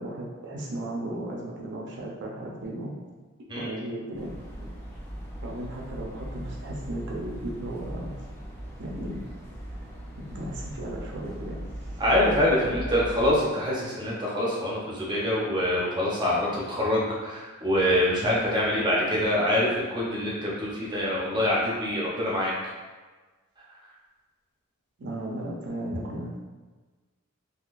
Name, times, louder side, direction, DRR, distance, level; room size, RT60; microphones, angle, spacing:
voice 1, 0.0-2.9 3.6-4.3 5.4-8.1 8.8-9.2 10.3-11.6 25.0-26.4, right 1 dB, 50° right, -2 dB, 0.7 m, -35 dB
sound 1, 4.1-13.4, right 1 dB, 10° left, 0.5 m, -39 dB
voice 2, 12.0-22.5, left 1 dB, 20° right, -5 dB, 0.8 m, -25 dB
3.8 x 2.8 x 2.5 m, 1.3 s
head